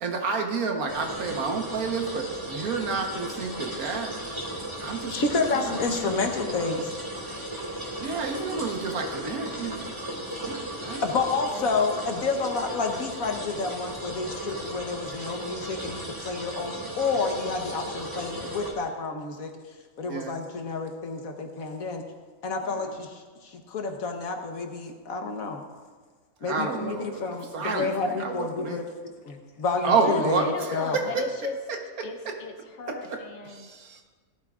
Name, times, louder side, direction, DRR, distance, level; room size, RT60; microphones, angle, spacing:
voice 1, 0.0-4.1 4.8-5.2 5.5-6.1 8.0-11.0 20.1-20.4 22.7-22.8 26.5-27.2 27.5-28.8 29.8-30.4 33.5-34.0, right 4 dB, 85° right, 3 dB, 1.7 m, -30 dB
sound 1, 0.9-18.7, right 1 dB, 20° right, 2.1 m, -36 dB
voice 2, 5.1-6.9 11.0-19.5 20.0-22.0 22.4-25.6 26.4-31.1, left 4 dB, 75° left, 3 dB, 1.6 m, -29 dB
voice 3, 29.3-29.6 29.9-31.6 32.0-33.7, left 3 dB, 55° left, 5 dB, 1.2 m, -35 dB
17.5 x 12.0 x 2.5 m, 1.5 s
omnidirectional pair, 1.5 m